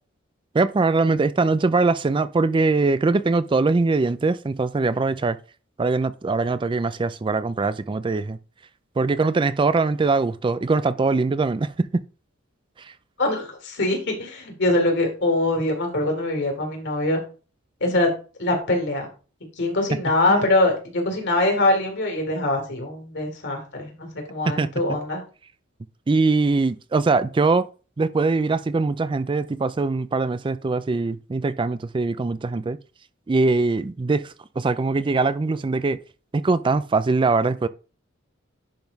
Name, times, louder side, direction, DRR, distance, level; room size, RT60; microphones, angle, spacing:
voice 1, 0.5-5.4 5.8-8.4 9.0-12.0 20.3-20.5 24.5-24.7 26.1-27.7 28.0-32.8 33.3-36.0 36.3-37.7, right 3 dB, 25° right, 0.4 m, -22 dB
voice 2, 13.2-17.2 17.8-18.1 18.4-19.1 19.6-25.2, left 2 dB, 60° left, 3.0 m, -23 dB
10.5 x 3.6 x 5.3 m
head